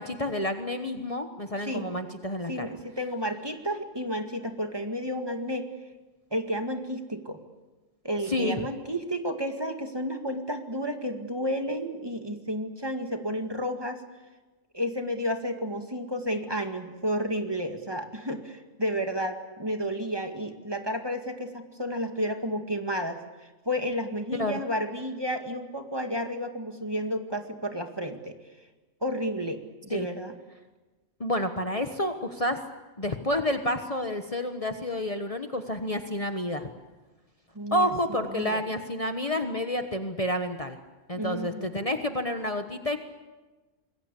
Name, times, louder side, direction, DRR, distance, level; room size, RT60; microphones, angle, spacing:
voice 1, 0.0-2.7 8.3-8.7 24.4-24.6 29.9-30.1 31.2-32.6 33.0-36.7 37.7-40.8 41.1-43.0, left 1 dB, 30° left, 6 dB, 1.3 m, -29 dB
voice 2, 2.5-5.7 6.3-7.4 8.0-14.0 14.7-23.2 23.7-28.3 29.0-30.4 37.6-37.9 38.3-38.6 41.1-41.7, equal, 20° right, 5 dB, 2.0 m, -31 dB
26.5 x 21.0 x 8.4 m, 1.2 s
omnidirectional pair, 1.3 m